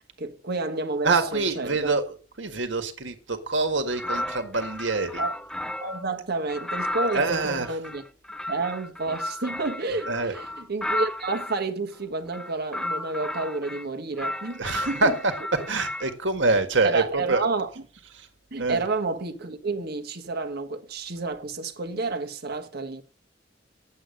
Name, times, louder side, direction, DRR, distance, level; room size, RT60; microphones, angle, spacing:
voice 1, 0.2-1.9 5.2-5.3 5.8-8.0 8.5-15.1 16.8-17.7 18.5-23.0, right 3 dB, 60° right, 1.4 m, -30 dB
voice 2, 1.0-5.2 7.0-7.8 9.9-10.3 14.6-17.5 18.0-18.3 18.6-18.9, right 3 dB, 80° right, 1.7 m, -26 dB
sound 1, 3.9-6.0 6.5-11.6 12.3-13.9 14.2-16.1, left 1 dB, 5° left, 0.6 m, -33 dB
8.7 x 8.0 x 6.4 m
head